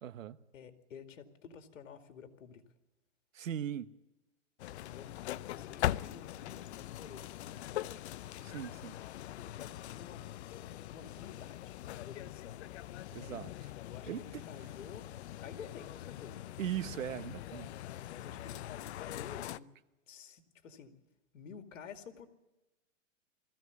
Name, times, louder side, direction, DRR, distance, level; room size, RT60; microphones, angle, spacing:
voice 1, 0.0-0.4 3.3-3.9 8.4-9.0 13.1-13.7 14.1-14.4 16.6-17.7, right 10 dB, 90° right, 1.2 m, -39 dB
voice 2, 0.5-2.6 4.8-5.1 5.4-8.0 9.3-10.3 10.6-12.6 13.8-15.1 15.4-16.4 18.1-19.7 20.1-21.0 21.3-22.3, left 7 dB, 80° left, 2.5 m, -51 dB
sound 1, 4.6-19.6, left 13 dB, 60° left, 0.7 m, -42 dB
20.5 x 15.5 x 9.6 m
hypercardioid pair, 150°, 38 cm